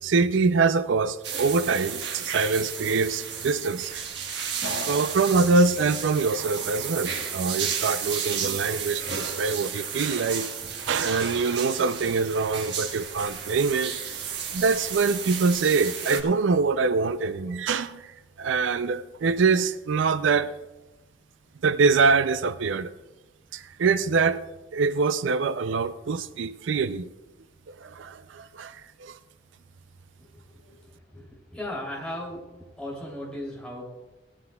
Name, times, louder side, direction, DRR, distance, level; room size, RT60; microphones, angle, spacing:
voice 1, 0.0-3.9 4.9-10.5 10.9-14.1 14.5-20.5 21.6-22.9 23.5-24.4 24.7-27.1 27.7-29.2, right 4 dB, 80° right, 13 dB, 0.4 m, -24 dB
sound 1, 1.2-16.2, right 7 dB, 65° right, 1.4 m, -33 dB
voice 2, 30.5-30.8 31.1-32.4 32.8-33.8, left 1 dB, 5° left, -4 dB, 3.0 m, -36 dB
18.0 x 13.5 x 2.3 m, 1.1 s
head